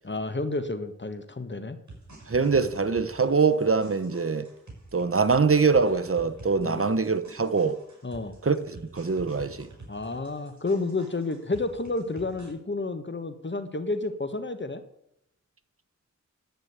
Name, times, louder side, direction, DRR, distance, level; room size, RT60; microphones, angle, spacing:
voice 1, 0.0-1.8 6.6-6.8 8.0-8.3 9.9-14.8, left 3 dB, 40° left, 1.4 m, -30 dB
sound 1, 1.9-12.5, right 2 dB, 70° right, 5.8 m, -48 dB
voice 2, 2.3-4.4 4.9-7.8 8.4-9.7, right 4 dB, 50° right, 1.0 m, -23 dB
10.5 x 8.9 x 8.2 m
wide cardioid pair, 65°, 29 cm